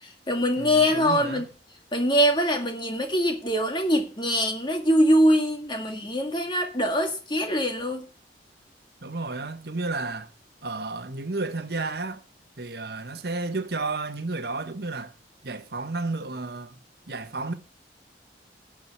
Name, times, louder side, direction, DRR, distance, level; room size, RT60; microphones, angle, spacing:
voice 1, 0.0-1.5 1.9-8.1, equal, 25° left, 2.1 m, -23 dB
voice 2, 0.6-1.4 9.0-10.3 10.6-12.2 12.6-15.1 15.4-16.8 17.1-17.5, right 3 dB, 65° right, 1.1 m, -32 dB
12.0 x 4.6 x 8.4 m
head